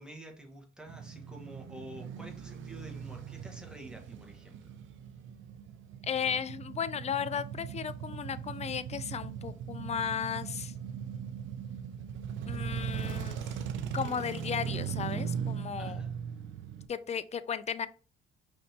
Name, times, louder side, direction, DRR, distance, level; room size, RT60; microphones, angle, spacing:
voice 1, 0.0-4.7 15.8-16.2, right 1 dB, 5° right, 1.2 m, -48 dB
Male speech man speaking / Motorcycle / Idling, 0.9-16.9, right 8 dB, 75° right, 0.6 m, -39 dB
voice 2, 6.0-10.7 12.5-13.5 13.9-16.0 16.9-17.9, left 7 dB, 35° left, 0.4 m, -35 dB
5.3 x 3.4 x 2.8 m
cardioid pair, 90°, 20 cm